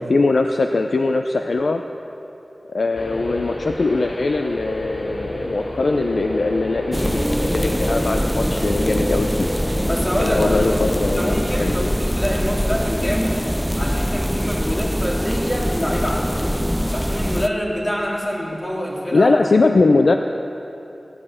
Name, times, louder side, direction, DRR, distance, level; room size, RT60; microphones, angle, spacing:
voice 1, 0.0-1.8 2.6-9.5 10.2-11.9 19.1-20.1, left 3 dB, 80° left, 5 dB, 0.5 m, -21 dB
sound 1, 2.9-11.2, left 1 dB, 50° left, 2.4 m, -29 dB
sound 2, 6.9-17.5, equal, ahead, 0.4 m, -23 dB
voice 2, 9.9-10.7 11.1-13.5 13.8-19.5, equal, 30° left, -3 dB, 3.4 m, -26 dB
16.5 x 11.0 x 7.6 m, 3.0 s
wide cardioid pair, 50°, 0 cm